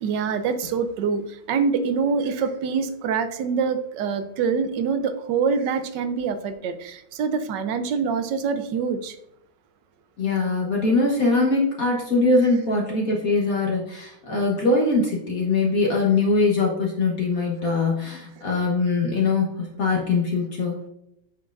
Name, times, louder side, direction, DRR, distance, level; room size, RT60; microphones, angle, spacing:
voice 1, 0.0-9.2, right 5 dB, 70° right, 10 dB, 1.2 m, -25 dB
voice 2, 10.2-20.7, left 3 dB, 50° left, -2 dB, 1.4 m, -22 dB
8.5 x 6.2 x 2.5 m, 0.80 s
omnidirectional pair, 2.2 m